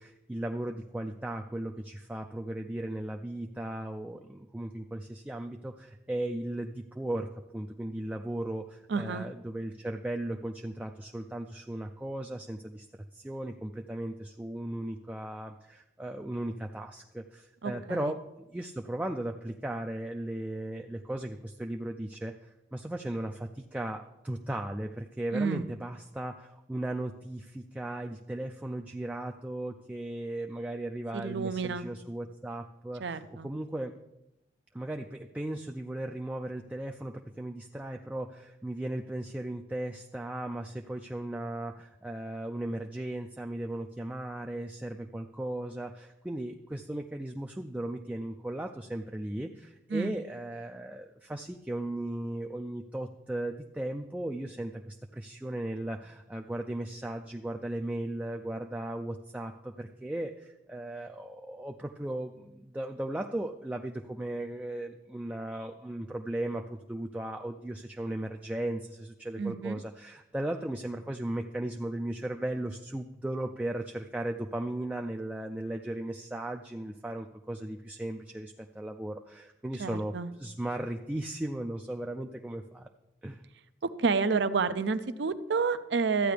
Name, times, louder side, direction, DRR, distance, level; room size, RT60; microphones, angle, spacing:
voice 1, 0.0-7.3 7.5-12.9 13.1-33.9 34.7-82.9 83.2-83.4, right 1 dB, 10° right, 3 dB, 0.3 m, -36 dB
voice 2, 8.9-9.3 17.6-18.1 25.3-25.6 31.1-31.8 33.0-33.5 49.9-50.1 69.4-69.7 79.8-80.3 84.0-86.3, right 4 dB, 70° right, 13 dB, 0.5 m, -29 dB
13.5 x 9.0 x 3.4 m, 0.92 s
head